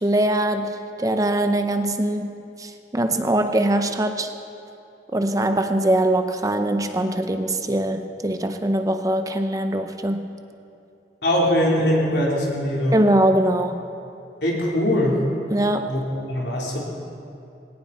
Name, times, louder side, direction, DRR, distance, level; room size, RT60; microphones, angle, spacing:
voice 1, 0.0-4.3 5.1-10.3 12.9-13.8 15.5-16.0, right 1 dB, 20° right, 7 dB, 0.6 m, -22 dB
voice 2, 11.2-13.0 14.4-15.2 15.9-16.0 16.3-16.8, left 1 dB, 70° left, -3 dB, 3.7 m, -21 dB
19.0 x 17.5 x 4.3 m, 2.7 s
head